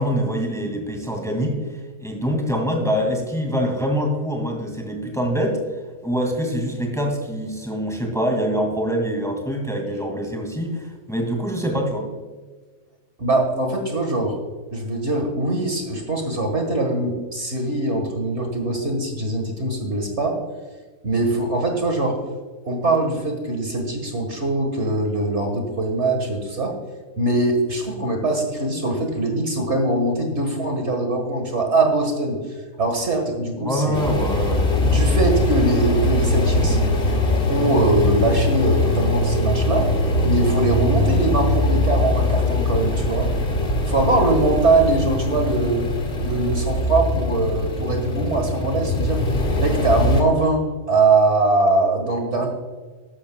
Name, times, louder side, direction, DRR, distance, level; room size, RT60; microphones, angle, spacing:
voice 1, 0.0-1.6 2.0-5.6 6.0-12.1 33.6-34.8, equal, ahead, 2 dB, 2.0 m, -24 dB
voice 2, 13.2-14.4 14.7-20.4 21.0-22.2 22.6-26.8 27.2-34.0 34.8-36.8 37.5-39.9 40.2-43.3 43.9-45.9 46.2-49.2 49.6-52.5, right 2 dB, 50° right, 3 dB, 1.8 m, -22 dB
sound 1, 33.9-50.2, left 1 dB, 40° left, 1.9 m, -21 dB
13.0 x 11.5 x 2.3 m, 1.4 s
omnidirectional pair, 1.5 m